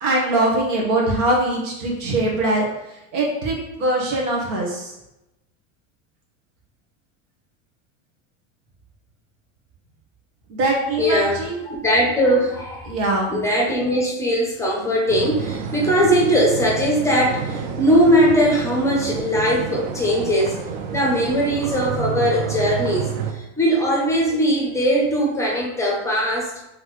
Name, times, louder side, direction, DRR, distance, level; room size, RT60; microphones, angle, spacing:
voice 1, 0.0-2.7 3.1-4.9 10.5-11.6 12.9-13.3, right 2 dB, 85° right, -2 dB, 1.5 m, -22 dB
voice 2, 11.0-12.9 13.3-20.6 20.9-26.7, equal, 10° left, -3 dB, 0.6 m, -20 dB
sound 1, 15.1-23.3, right 6 dB, 55° right, 0.5 m, -29 dB
4.1 x 3.4 x 3.1 m, 0.93 s
cardioid pair, 155°, 37 cm